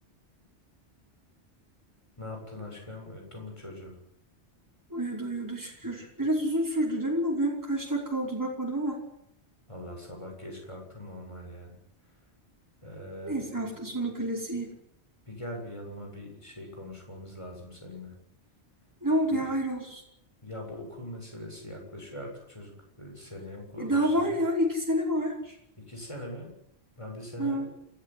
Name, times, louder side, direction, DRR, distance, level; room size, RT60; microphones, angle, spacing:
voice 1, 2.2-4.0 9.7-11.8 12.8-13.8 15.3-18.2 19.3-19.4 20.4-24.4 25.8-26.5 27.0-27.7, left 1 dB, 25° left, 1 dB, 7.5 m, -42 dB
voice 2, 4.9-9.0 13.2-14.7 19.0-20.0 23.8-25.6 27.4-27.7, right 1 dB, 15° right, -2 dB, 5.2 m, -29 dB
28.5 x 14.5 x 9.5 m, 0.76 s
omnidirectional pair, 1.2 m